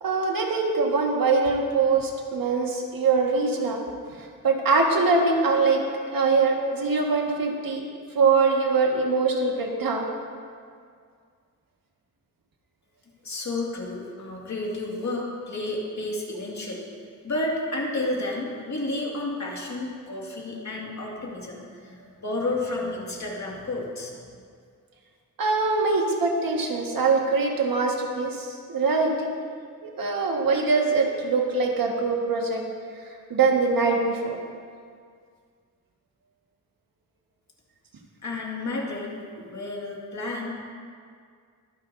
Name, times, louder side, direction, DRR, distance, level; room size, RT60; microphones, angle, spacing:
voice 1, 0.0-3.8 4.1-5.8 6.1-7.9 8.1-10.1 25.4-29.3 29.8-32.6 33.3-34.4, right 4 dB, 85° right, 0 dB, 1.7 m, -23 dB
voice 2, 13.2-16.9 17.2-24.2 38.2-40.5, left 2 dB, 55° left, -3 dB, 2.2 m, -31 dB
23.0 x 9.7 x 2.7 m, 2.1 s
wide cardioid pair, 170°, 34 cm